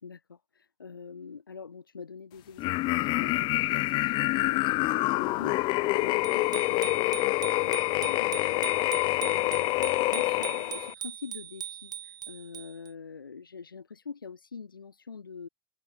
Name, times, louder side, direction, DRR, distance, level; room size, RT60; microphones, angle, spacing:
voice 1, 0.0-15.5, left 5 dB, 85° left, 1.7 m, -45 dB
sound 1, 2.6-10.9, left 20 dB, 45° left, 0.4 m, -27 dB
Bicycle bell, 6.2-12.9, right 10 dB, 35° right, 5.8 m, -40 dB
open air
figure-of-eight pair, 70°, 11 cm